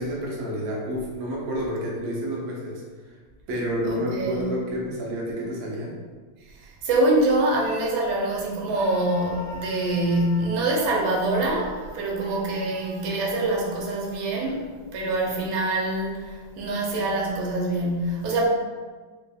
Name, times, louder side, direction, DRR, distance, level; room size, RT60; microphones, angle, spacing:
voice 1, 0.0-3.2 3.5-5.9, equal, 60° right, -4 dB, 1.0 m, -29 dB
voice 2, 3.9-4.4 6.6-18.5, right 2 dB, 80° right, -3 dB, 1.5 m, -25 dB
Screaming, 8.7-14.6, equal, 70° left, 1.5 m, -43 dB
4.1 x 2.9 x 2.3 m, 1.4 s
omnidirectional pair, 2.3 m